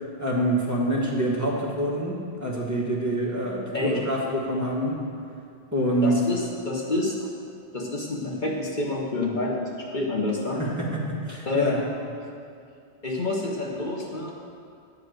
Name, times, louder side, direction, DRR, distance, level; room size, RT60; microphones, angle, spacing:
voice 1, 0.2-2.1 2.4-5.0 5.7-6.2 10.6-11.8, right 1 dB, 15° right, -5 dB, 1.6 m, -26 dB
voice 2, 6.0-7.1 7.7-10.6 11.5-11.9 12.2-12.3 13.0-14.3, left 2 dB, 45° left, -2 dB, 1.3 m, -28 dB
11.0 x 5.0 x 7.8 m, 2.4 s
omnidirectional pair, 1.1 m